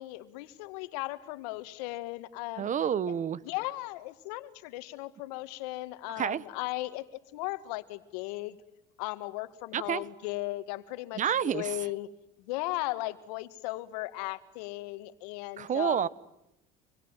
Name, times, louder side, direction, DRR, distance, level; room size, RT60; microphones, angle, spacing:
voice 1, 0.0-2.7 3.1-3.2 3.4-8.6 9.0-12.1 12.5-16.1, left 19 dB, 85° left, 13 dB, 2.0 m, -37 dB
voice 2, 2.6-3.4 6.2-6.4 9.7-10.0 11.2-11.7 15.6-16.1, right 8 dB, 40° right, 19 dB, 1.4 m, -29 dB
27.5 x 22.5 x 9.2 m, 0.85 s
supercardioid pair, 105°, 20 cm